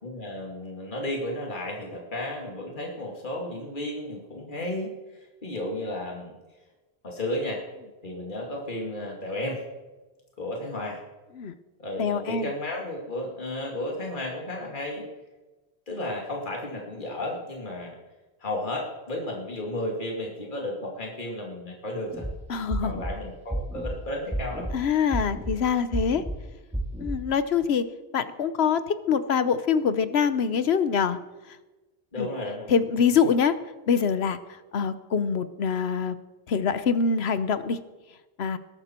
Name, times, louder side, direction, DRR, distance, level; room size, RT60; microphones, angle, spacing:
voice 1, 0.0-4.9 5.4-6.4 7.0-7.6 8.0-9.6 10.4-11.0 11.8-15.0 15.9-17.9 18.4-22.2 22.8-24.7 32.1-32.7, left 1 dB, 50° left, -1 dB, 2.5 m, -33 dB
voice 2, 12.0-12.5 22.5-22.9 24.7-26.2 27.0-27.9 28.1-31.2 32.2-32.3 32.7-33.6 33.9-34.4 34.7-36.2 36.5-37.8 38.4-38.6, left 6 dB, 80° left, 13 dB, 1.1 m, -24 dB
sound 1, 22.1-22.3 22.7-23.1 23.5-23.9 24.3-24.7 25.1-25.5 25.9-26.3 26.7-27.2, right 1 dB, 5° right, 2.3 m, -30 dB
20.0 x 12.0 x 4.4 m, 1.2 s
omnidirectional pair, 1.1 m